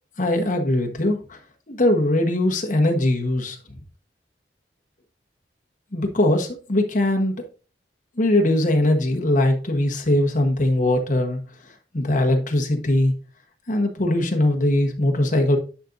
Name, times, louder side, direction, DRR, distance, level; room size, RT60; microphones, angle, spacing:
voice 1, 0.2-1.4 1.7-3.6 5.9-7.4 8.2-11.4 11.9-13.1 13.7-15.6, left 1 dB, 45° left, 1.3 m, -21 dB
9.8 x 5.2 x 2.6 m
head